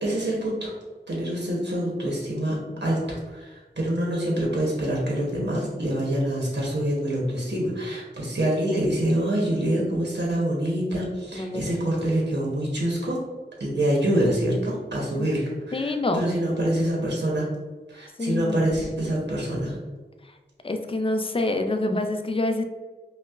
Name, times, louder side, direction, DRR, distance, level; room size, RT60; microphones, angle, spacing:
voice 1, 0.0-0.7 1.1-13.2 13.6-17.5 17.9-19.8, right 1 dB, 90° right, -4 dB, 0.8 m, -26 dB
voice 2, 11.3-12.0 15.1-15.3 15.7-16.2 18.2-18.7 20.6-22.6, left 2 dB, 30° left, 6 dB, 0.4 m, -27 dB
5.2 x 2.1 x 2.3 m, 1.3 s
wide cardioid pair, 40°, 18 cm